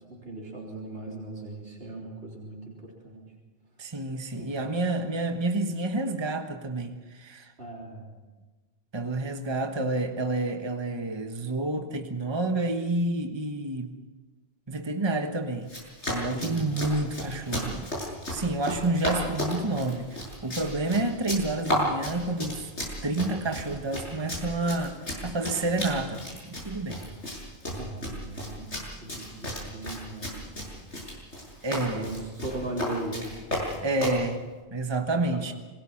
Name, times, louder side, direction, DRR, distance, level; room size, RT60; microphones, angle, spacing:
voice 1, 0.0-3.3 4.4-4.6 7.6-8.2 16.3-16.7 27.8-28.7 29.0-30.3 31.8-33.3 33.6-33.9 35.1-35.5, right 2 dB, 60° right, -3 dB, 3.9 m, -38 dB
voice 2, 3.8-7.5 8.9-13.9 14.7-15.7 16.1-17.9 18.3-22.7 23.0-27.0 31.6-32.1 33.8-35.5, right 2 dB, 25° right, 5 dB, 1.3 m, -29 dB
Run, 15.6-34.2, left 1 dB, 90° left, 7.4 m, -34 dB
26.5 x 20.5 x 5.9 m, 1.3 s
omnidirectional pair, 1.1 m